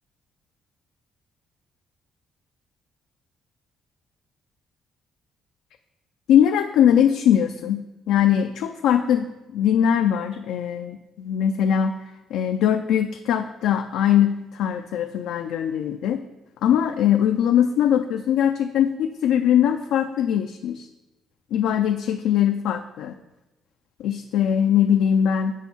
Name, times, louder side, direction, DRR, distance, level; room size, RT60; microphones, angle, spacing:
voice 1, 6.3-9.3 9.5-12.0 12.3-16.2 16.6-20.9 21.5-23.1 24.0-25.5, left 9 dB, 90° left, 5 dB, 0.4 m, -21 dB
6.9 x 6.4 x 5.6 m, 1.0 s
cardioid pair, 90°, 0 cm